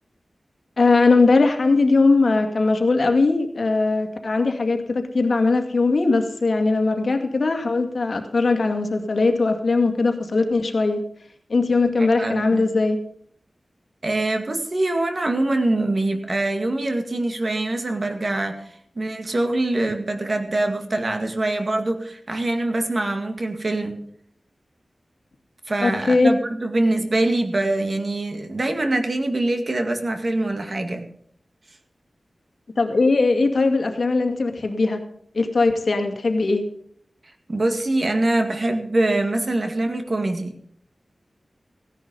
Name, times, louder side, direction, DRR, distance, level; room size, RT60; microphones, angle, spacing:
voice 1, 0.8-11.0 11.5-13.0 25.8-26.3 32.8-35.0 35.3-36.6, left 3 dB, 65° left, 5 dB, 2.1 m, -20 dB
voice 2, 12.0-12.7 14.0-24.0 25.7-31.1 37.5-40.5, right 2 dB, 45° right, 6 dB, 2.0 m, -24 dB
16.0 x 10.5 x 5.5 m, 0.65 s
wide cardioid pair, 95°, 0 cm